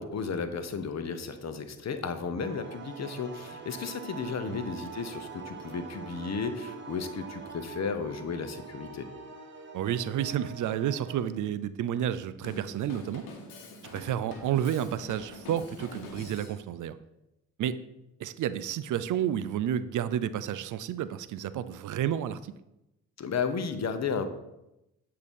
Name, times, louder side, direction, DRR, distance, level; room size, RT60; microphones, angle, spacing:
voice 1, 0.0-9.1 23.2-24.3, left 5 dB, 50° left, 9 dB, 0.8 m, -33 dB
sound 1, 2.4-11.2, right 5 dB, 35° right, 1.3 m, -44 dB
voice 2, 9.7-13.3 13.9-17.0 17.6-17.8 18.2-22.5, right 10 dB, 60° right, 14 dB, 0.4 m, -31 dB
Drum kit, 12.4-16.6, left 2 dB, 90° left, 1.0 m, -45 dB
8.2 x 2.8 x 5.3 m, 0.91 s
supercardioid pair, 55°, 35 cm